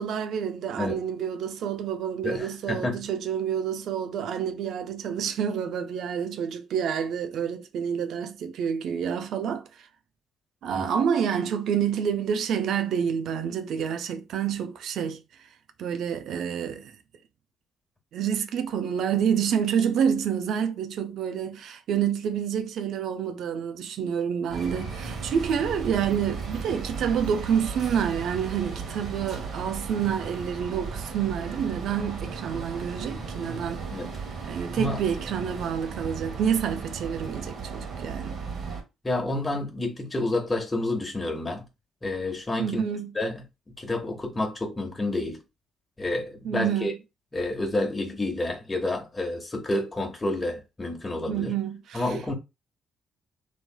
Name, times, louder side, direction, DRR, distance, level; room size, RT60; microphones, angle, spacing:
voice 1, 0.0-9.6 10.6-15.2 15.8-17.0 18.1-33.8 34.4-38.4 42.6-43.2 46.4-47.0 51.3-52.2, right 8 dB, 65° right, 0.4 m, -28 dB
voice 2, 2.2-3.0 10.7-10.9 33.9-34.1 34.7-35.0 39.0-41.6 42.0-42.8 43.1-43.4 43.8-45.4 46.0-46.9 47.3-51.5 51.9-52.3, left 2 dB, 25° left, 1.1 m, -29 dB
sound 1, 24.5-38.8, right 5 dB, 45° right, 1.2 m, -36 dB
2.9 x 2.9 x 2.2 m
hypercardioid pair, 50°, 0 cm